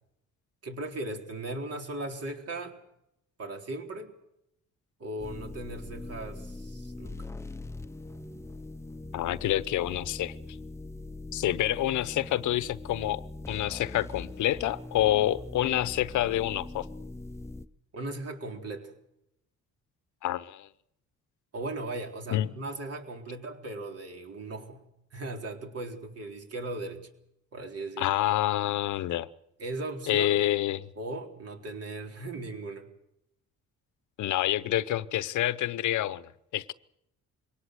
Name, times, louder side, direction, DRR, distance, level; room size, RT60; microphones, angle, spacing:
voice 1, 0.6-2.8 3.4-4.1 5.0-7.3 17.9-18.9 21.5-24.8 25.1-27.0 27.5-28.1 29.6-30.4 31.0-32.9, right 2 dB, 55° right, 3 dB, 4.0 m, -38 dB
sound 1, 5.2-17.7, left 2 dB, 10° left, 0.8 m, -42 dB
voice 2, 9.1-10.3 11.3-16.9 20.2-20.7 22.3-22.5 28.0-29.3 30.1-30.9 34.2-36.2 36.5-36.7, left 13 dB, 75° left, 17 dB, 0.9 m, -27 dB
23.0 x 18.0 x 7.9 m, 0.82 s
cardioid pair, 90°, 30 cm